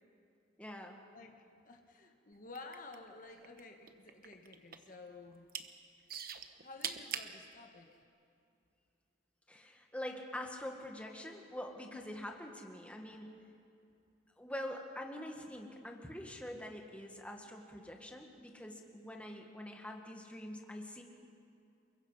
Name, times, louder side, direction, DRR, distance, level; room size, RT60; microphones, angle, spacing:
voice 1, 0.6-1.1 9.5-13.4 14.4-21.0, left 1 dB, 5° left, 2 dB, 1.7 m, -45 dB
voice 2, 1.1-5.5 6.6-8.0, left 3 dB, 45° left, 4 dB, 1.5 m, -52 dB
sound 1, 2.5-3.6 3.9-4.9 5.3-5.7 6.1-7.3 8.0-8.1, right 8 dB, 50° right, 1.1 m, -41 dB
29.5 x 22.0 x 5.6 m, 2.5 s
head